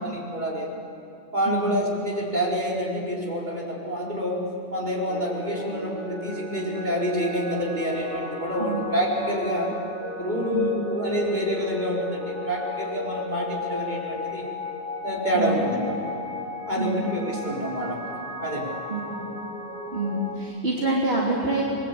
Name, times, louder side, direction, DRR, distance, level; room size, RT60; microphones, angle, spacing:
voice 1, 0.0-0.8 1.3-4.4 4.7-9.8 10.2-14.4 15.0-16.1 16.7-18.0 18.4-18.7, equal, 40° right, -3 dB, 5.0 m, -27 dB
voice 2, 1.5-1.8 8.6-8.8 10.5-10.7 15.3-15.6 16.8-17.1 18.9-19.2 19.9-21.6, right 3 dB, 60° right, -4 dB, 3.3 m, -26 dB
sound 1, 5.1-20.4, left 2 dB, 85° right, 3.0 m, -35 dB
28.5 x 22.0 x 8.6 m, 2.6 s
omnidirectional pair, 1.2 m